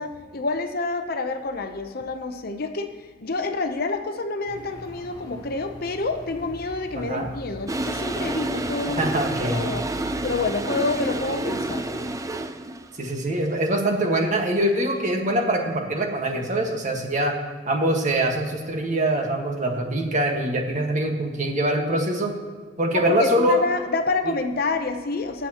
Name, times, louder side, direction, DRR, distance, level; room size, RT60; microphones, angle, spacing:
voice 1, 0.0-9.1 9.4-9.8 10.2-11.8 22.9-25.5, left 3 dB, 55° left, 7 dB, 0.8 m, -28 dB
sound 1, 4.4-12.2, equal, 20° left, 1.5 m, -42 dB
voice 2, 6.9-7.3 9.0-9.6 13.0-17.4 17.7-22.4 22.8-23.6 24.2-24.3, right 1 dB, 40° right, 2 dB, 1.6 m, -23 dB
Toilet flush, 7.7-12.9, right 2 dB, 20° right, 0.5 m, -29 dB
21.0 x 7.2 x 3.0 m, 1.6 s
head